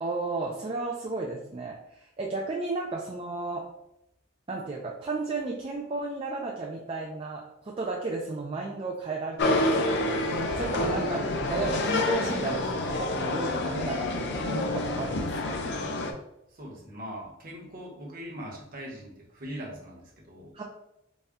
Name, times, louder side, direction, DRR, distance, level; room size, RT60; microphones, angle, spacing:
voice 1, 0.0-3.6 4.5-10.0 10.6-15.6 20.5-20.6, right 3 dB, 25° right, -2 dB, 0.4 m, -33 dB
sound 1, 9.4-16.1, left 2 dB, 55° left, 0.5 m, -28 dB
voice 2, 16.5-20.6, equal, 45° right, -1 dB, 1.0 m, -41 dB
4.0 x 2.2 x 3.5 m, 0.83 s
head